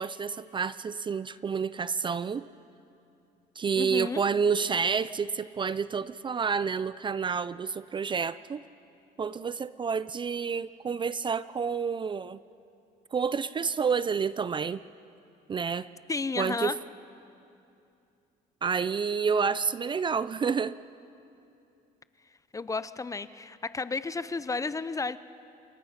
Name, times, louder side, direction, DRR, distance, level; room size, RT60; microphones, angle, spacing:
voice 1, 0.0-2.5 3.6-8.6 9.2-12.4 13.1-14.8 15.5-15.9 16.4-16.7 18.6-20.7, right 6 dB, 30° right, 16 dB, 0.5 m, -29 dB
voice 2, 3.8-4.2 16.1-16.8 22.5-25.2, left 4 dB, 20° left, 15 dB, 0.6 m, -32 dB
28.5 x 23.0 x 5.8 m, 2.7 s
cardioid pair, 110°, 17 cm